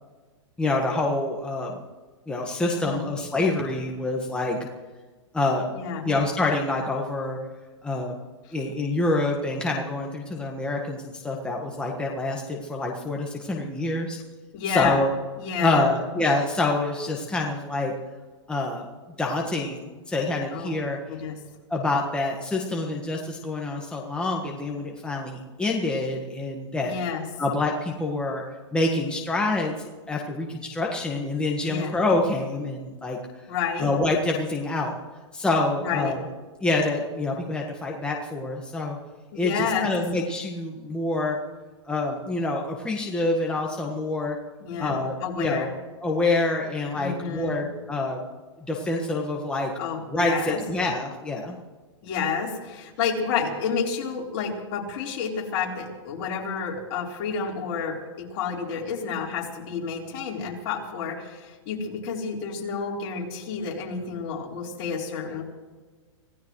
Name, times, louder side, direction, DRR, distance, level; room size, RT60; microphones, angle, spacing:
voice 1, 0.6-1.7 2.3-4.6 5.3-5.7 6.0-7.4 7.8-8.1 8.5-14.2 14.7-15.1 15.6-17.9 18.5-18.9 19.2-21.1 21.7-26.9 27.4-28.4 28.7-29.7 30.1-33.2 33.8-34.9 35.3-36.2 36.6-39.0 39.3-41.4 41.8-44.4 44.8-45.7 46.0-48.2 48.7-49.7 50.1-51.6, left 2 dB, 5° left, -1 dB, 1.6 m, -26 dB
voice 2, 2.7-3.0 5.7-6.0 14.5-15.0 15.4-15.9 20.5-20.7 21.1-21.4 26.8-27.2 31.6-32.0 33.5-33.9 35.8-36.2 39.3-39.9 44.6-45.7 46.9-47.7 49.8-50.6 52.0-65.4, left 6 dB, 50° left, -2 dB, 4.2 m, -30 dB
26.5 x 17.0 x 3.2 m, 1.3 s
hypercardioid pair, 135°, 16 cm